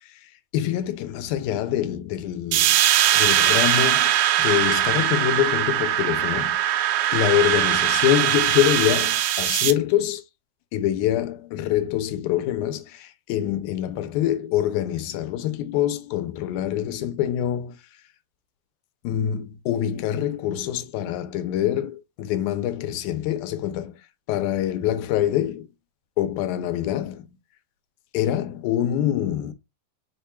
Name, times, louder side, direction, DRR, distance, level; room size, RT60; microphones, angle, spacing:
voice 1, 0.5-2.8 3.1-6.6 7.1-10.2 10.7-17.8 19.0-24.0 24.3-25.7 26.2-27.3 28.1-29.5, left 11 dB, 90° left, 2.1 m, -25 dB
sound 1, 2.5-9.7, right 11 dB, 90° right, 1.4 m, -21 dB
5.3 x 2.2 x 4.3 m
omnidirectional pair, 3.4 m